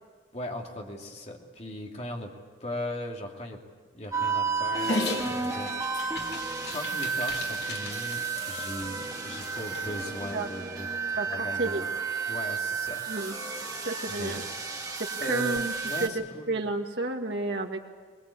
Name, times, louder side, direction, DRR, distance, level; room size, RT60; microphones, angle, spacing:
voice 1, 0.3-2.3 2.6-3.6 3.9-5.8 6.7-11.9 12.3-13.6 14.2-14.4 15.2-16.5, left 1 dB, 35° left, 1 dB, 2.6 m, -39 dB
sound 1, 4.1-16.1, right 4 dB, 20° right, 1.6 m, -32 dB
Dog, 4.7-10.1, left 2 dB, 60° left, 2.9 m, -37 dB
voice 2, 11.1-11.8 13.1-13.4 13.9-14.4 15.0-15.7 16.0-16.1 16.5-17.8, right 2 dB, 65° right, 2 dB, 2.3 m, -31 dB
22.5 x 22.0 x 8.5 m, 1.5 s
head